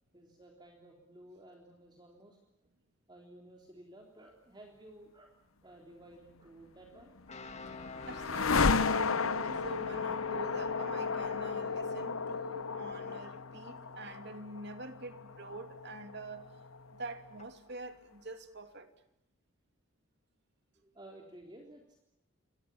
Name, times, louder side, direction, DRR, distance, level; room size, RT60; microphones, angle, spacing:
voice 1, 0.1-2.4 3.1-7.2 20.8-22.0, right 1 dB, 20° right, 3.6 m, -55 dB
sound 1, 7.0-17.1, left 4 dB, 80° left, 1.0 m, -34 dB
sound 2, 7.3-17.5, left 2 dB, 35° left, 2.1 m, -51 dB
voice 2, 7.7-16.5 16.9-18.9, right 2 dB, 55° right, 2.7 m, -45 dB
28.5 x 24.5 x 7.3 m
head